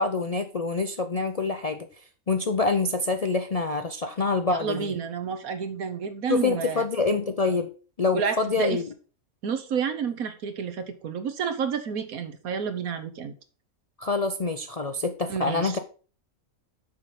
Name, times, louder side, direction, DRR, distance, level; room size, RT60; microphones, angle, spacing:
voice 1, 0.0-1.9 2.3-4.9 6.3-7.7 8.0-8.8 14.0-15.8, left 3 dB, 55° left, 7 dB, 0.4 m, -26 dB
voice 2, 4.6-6.8 8.1-8.8 9.4-13.3 15.3-15.8, right 6 dB, 85° right, 8 dB, 1.5 m, -30 dB
6.7 x 5.7 x 5.2 m, 0.38 s
omnidirectional pair, 1.5 m